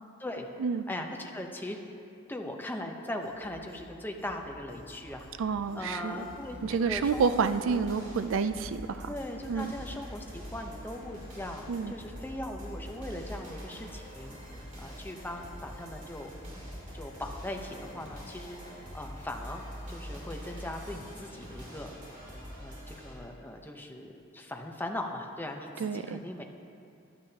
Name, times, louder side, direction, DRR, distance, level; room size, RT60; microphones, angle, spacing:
voice 1, 0.9-1.8 2.3-5.4 5.7-6.6 6.8-7.8 9.0-16.3 16.9-19.6 19.9-21.9 22.6-26.4, left 1 dB, 10° left, 2 dB, 0.8 m, -39 dB
sound 1, 3.2-16.0, equal, 30° left, 2.1 m, -53 dB
sound 2, 5.0-23.1, equal, 40° right, 2.9 m, -45 dB
voice 2, 5.4-6.3 6.6-9.1 9.5-9.7 11.7-11.9 25.8-26.2, right 5 dB, 70° right, 11 dB, 0.4 m, -29 dB
15.5 x 11.5 x 2.9 m, 2.5 s
head